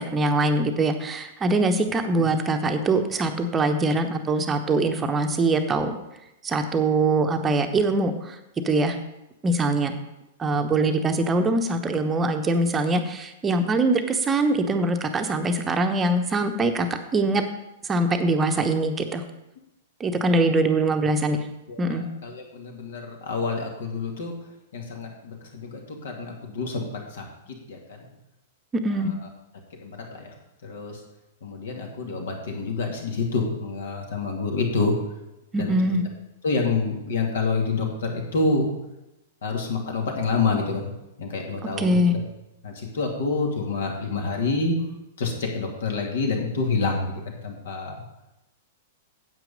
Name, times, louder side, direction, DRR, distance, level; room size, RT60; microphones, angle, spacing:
voice 1, 0.0-6.0 6.4-8.4 8.6-9.0 9.4-9.9 10.4-17.4 17.9-19.2 20.0-21.5 21.8-22.0 28.7-29.1 35.5-36.0 41.8-42.2, right 2 dB, 15° right, 7 dB, 1.0 m, -23 dB
voice 2, 21.7-24.3 24.7-28.0 29.0-29.1 29.8-30.3 30.6-31.0 31.4-35.0 35.6-35.7 36.4-38.7 39.4-40.9 41.2-42.0 42.6-44.8 45.2-48.0, left 4 dB, 60° left, 1 dB, 2.4 m, -28 dB
9.2 x 8.3 x 5.2 m, 0.91 s
figure-of-eight pair, 100°, 0 cm